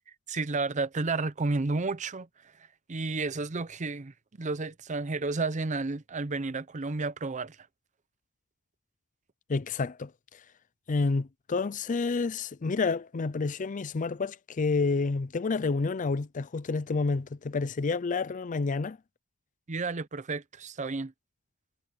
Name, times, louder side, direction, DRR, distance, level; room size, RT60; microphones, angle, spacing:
voice 1, 0.3-2.3 2.9-7.6 19.7-21.1, right 3 dB, 35° right, 0.7 m, -31 dB
voice 2, 9.5-10.4 10.9-19.0, left 4 dB, 40° left, 0.5 m, -29 dB
head